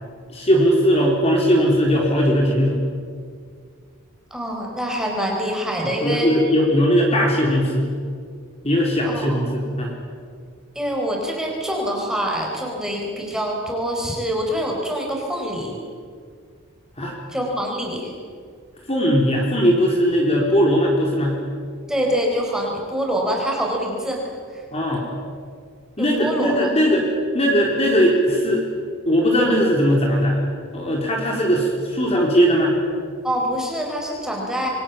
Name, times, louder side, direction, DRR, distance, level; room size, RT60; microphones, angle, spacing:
voice 1, 0.3-2.8 6.0-7.8 8.6-9.9 17.0-17.1 18.9-21.4 24.7-25.0 26.0-27.1 27.3-28.6 29.1-30.4 30.7-32.8, equal, 30° left, -1 dB, 4.0 m, -19 dB
voice 2, 4.3-6.3 9.1-9.4 10.8-15.7 17.3-18.1 21.9-24.6 26.0-26.6 33.2-34.7, equal, 5° right, -1 dB, 5.1 m, -25 dB
27.5 x 23.5 x 7.4 m, 2.1 s
head